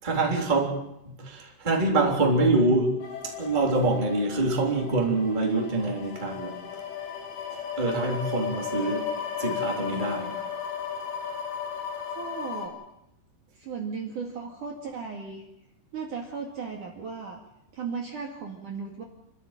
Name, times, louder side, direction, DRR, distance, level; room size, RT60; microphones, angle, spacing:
voice 1, 0.0-0.8 1.0-3.0 3.2-6.6 7.8-9.1 9.4-10.4, right 2 dB, 10° right, 2.7 m, -25 dB
sound 1, 3.0-12.7, left 7 dB, 80° left, 5.9 m, -35 dB
voice 2, 12.1-12.8 13.6-15.5 15.9-17.4 17.7-19.0, right 5 dB, 50° right, 3.1 m, -36 dB
28.5 x 13.5 x 9.0 m
omnidirectional pair, 5.6 m